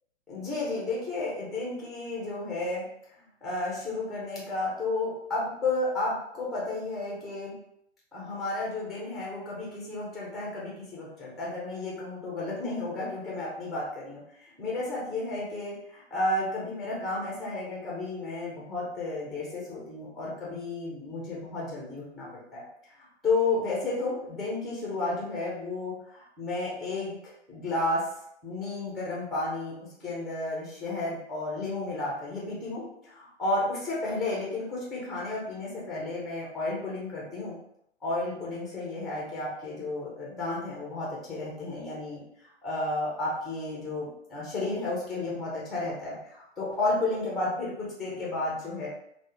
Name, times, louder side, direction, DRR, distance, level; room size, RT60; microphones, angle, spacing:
voice 1, 0.3-2.8 3.4-7.6 8.1-22.6 23.2-27.2 27.5-28.1 28.4-29.8 30.0-37.5 38.0-42.2 42.6-48.9, left 2 dB, ahead, -5 dB, 0.3 m, -32 dB
3.3 x 2.0 x 3.6 m, 0.72 s
figure-of-eight pair, 120°, 34 cm